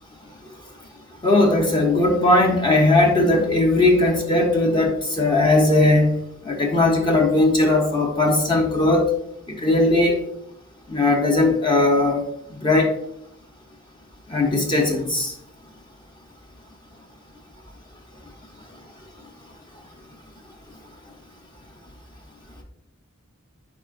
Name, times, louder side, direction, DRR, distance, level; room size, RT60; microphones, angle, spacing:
voice 1, 1.2-6.2 6.4-9.0 9.5-10.2 10.9-12.2 12.6-12.9 14.3-15.3, left 2 dB, 20° left, 0 dB, 0.6 m, -18 dB
4.7 x 4.6 x 2.4 m, 0.78 s
head